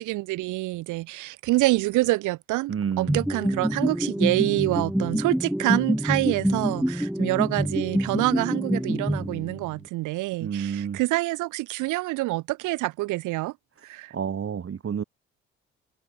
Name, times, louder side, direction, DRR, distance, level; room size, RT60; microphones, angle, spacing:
voice 1, 0.0-13.5 13.8-14.1, right 20 dB, 70° right, 3.3 m, -26 dB
voice 2, 2.7-3.2 10.4-11.0 13.8-15.0, right 7 dB, 45° right, 4.2 m, -30 dB
sound 1, 3.1-9.8, equal, ahead, 3.5 m, -26 dB
hypercardioid pair, 50°, 32 cm